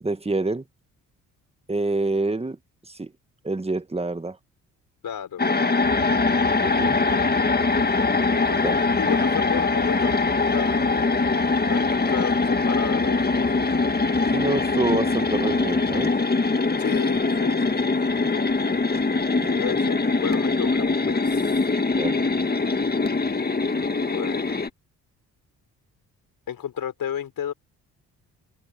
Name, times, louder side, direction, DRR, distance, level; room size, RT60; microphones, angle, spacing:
voice 1, 0.0-0.6 1.7-2.6 2.9-3.1 3.4-4.4 6.6-7.0 8.6-8.7 14.3-16.1 19.3-19.5 22.0-22.2, right 2 dB, 15° right, 1.7 m, -26 dB
voice 2, 5.0-5.4 6.6-7.3 8.3-8.6 9.0-11.0 11.7-13.5 16.8-18.5 19.3-21.6 23.7-24.6 26.5-27.5, left 9 dB, 65° left, 5.8 m, -33 dB
sound 1, 5.4-24.7, left 3 dB, 25° left, 2.0 m, -22 dB
sound 2, 5.8-16.2, right 7 dB, 55° right, 3.3 m, -41 dB
supercardioid pair, 55°, 37 cm